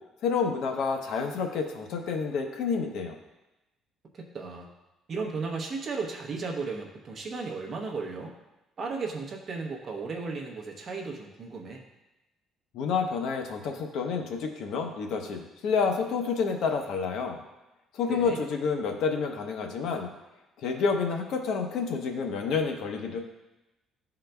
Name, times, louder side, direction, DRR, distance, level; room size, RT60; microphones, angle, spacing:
voice 1, 0.2-3.2 12.7-17.4 17.9-20.1 20.6-23.2, left 5 dB, 60° left, 3 dB, 0.7 m, -29 dB
voice 2, 4.1-4.7 5.1-8.3 8.8-11.8 18.1-18.4, right 4 dB, 30° right, 1 dB, 0.8 m, -35 dB
11.5 x 3.8 x 2.2 m, 0.99 s
cardioid pair, 175°, 0 cm